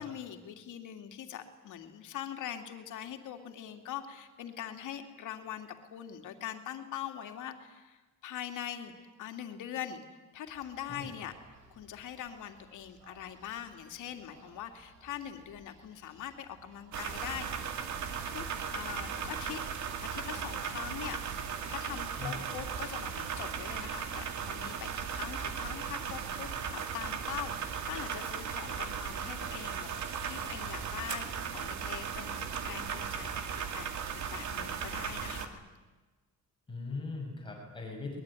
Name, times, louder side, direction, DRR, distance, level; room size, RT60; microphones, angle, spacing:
voice 1, 0.0-8.9 9.2-10.0 10.3-11.4 11.7-17.7 18.3-18.4 18.7-19.6 20.0-29.9 30.2-33.5 33.7-33.9 34.1-35.6, left 10 dB, 75° left, 6 dB, 2.7 m, -42 dB
sound 1, 10.5-25.2, right 3 dB, 85° right, 7.6 m, -61 dB
sound 2, 16.9-35.5, right 7 dB, 60° right, 2.5 m, -37 dB
voice 2, 36.7-38.2, left 3 dB, 15° left, 0 dB, 6.0 m, -40 dB
23.0 x 21.0 x 9.8 m, 1.2 s
cardioid pair, 155°, 31 cm